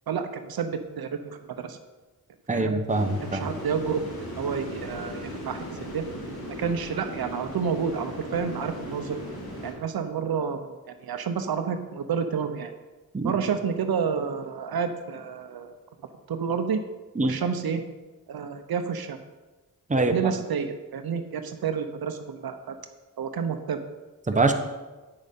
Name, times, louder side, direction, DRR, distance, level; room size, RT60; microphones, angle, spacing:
voice 1, 0.1-1.8 2.5-2.8 3.2-4.0 4.3-6.0 6.6-9.2 9.6-10.7 11.0-12.7 13.2-15.7 16.3-16.8 17.2-17.8 18.3-19.2 20.0-22.7 23.2-23.8, right 6 dB, 80° right, 8 dB, 0.8 m, -29 dB
voice 2, 2.5-3.5 13.1-13.3 17.2-17.4 19.9-20.3 24.3-24.5, right 3 dB, 20° right, 6 dB, 0.9 m, -24 dB
sound 1, 2.9-9.7, equal, 80° left, 2.4 m, -37 dB
8.7 x 6.4 x 5.3 m, 1.2 s
wide cardioid pair, 75°, 36 cm